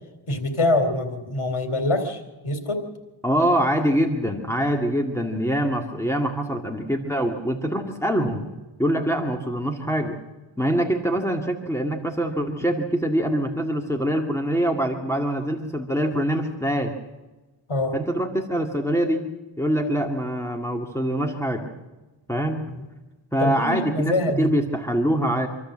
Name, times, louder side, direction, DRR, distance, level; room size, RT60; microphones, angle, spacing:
voice 1, 0.3-2.8 17.7-18.0 22.7-22.8 23.4-24.5, left 2 dB, 90° left, 6 dB, 3.4 m, -24 dB
voice 2, 3.2-8.5 8.8-10.2 10.6-16.9 17.9-19.3 19.6-21.7 22.3-22.6 23.3-25.5, equal, 5° left, 1 dB, 2.3 m, -24 dB
26.5 x 13.5 x 7.6 m, 1.2 s
cardioid pair, 50°, 48 cm